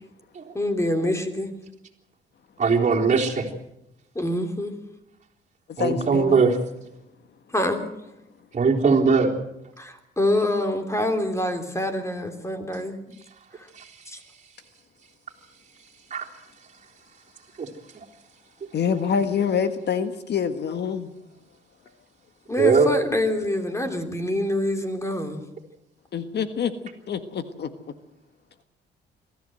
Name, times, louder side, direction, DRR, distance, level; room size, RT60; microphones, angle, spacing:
voice 1, 0.5-1.5 4.1-4.7 7.5-7.9 9.8-13.0 14.1-14.2 22.5-25.4, left 1 dB, 15° left, 6 dB, 3.1 m, -26 dB
voice 2, 2.6-3.5 5.8-6.6 8.5-9.3 13.8-13.9 16.1-16.3 17.6-17.7 22.6-22.9, right 5 dB, 40° right, -1 dB, 3.9 m, -20 dB
voice 3, 5.7-6.4 18.7-21.1 26.1-26.7 27.1-27.7, left 7 dB, 60° left, 9 dB, 1.6 m, -26 dB
23.0 x 14.5 x 7.9 m, 0.86 s
cardioid pair, 90°, 20 cm